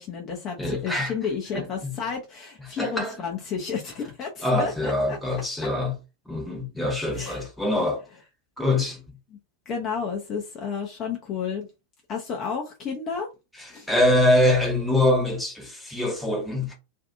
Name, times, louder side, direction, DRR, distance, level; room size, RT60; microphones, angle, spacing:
voice 1, 0.0-5.2 7.1-7.5 9.3-9.4 9.7-11.7 12.1-13.3 13.7-13.9, left 6 dB, 30° left, 0.6 m, -31 dB
voice 2, 0.6-1.1 1.5-1.9 2.8-3.3 4.4-5.9 6.3-8.0 8.6-9.0 13.9-16.7, left 1 dB, 5° left, 1.0 m, -24 dB
2.6 x 2.4 x 2.6 m
figure-of-eight pair, 90°, 0 cm